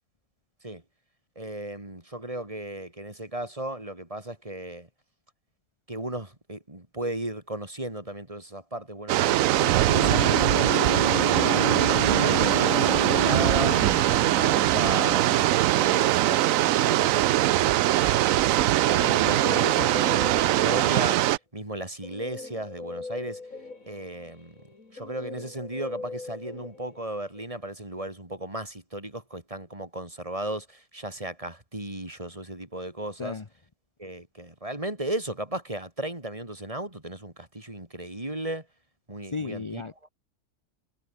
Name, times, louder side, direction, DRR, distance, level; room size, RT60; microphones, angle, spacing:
voice 1, 1.4-4.9 5.9-13.8 14.4-17.7 18.4-21.3 21.5-23.4 23.8-24.6 24.9-33.4 34.0-38.7 39.1-40.1, right 1 dB, 20° right, 3.6 m, -35 dB
sound 1, 9.1-21.4, right 14 dB, 70° right, 0.8 m, -22 dB
sound 2, 9.9-16.2, left 9 dB, 80° left, 1.8 m, -33 dB
Guitar, 18.7-21.2 22.0-27.4, left 3 dB, 50° left, 3.9 m, -41 dB
voice 2, 39.3-40.1, left 4 dB, 30° left, 0.6 m, -34 dB
omnidirectional pair, 1.8 m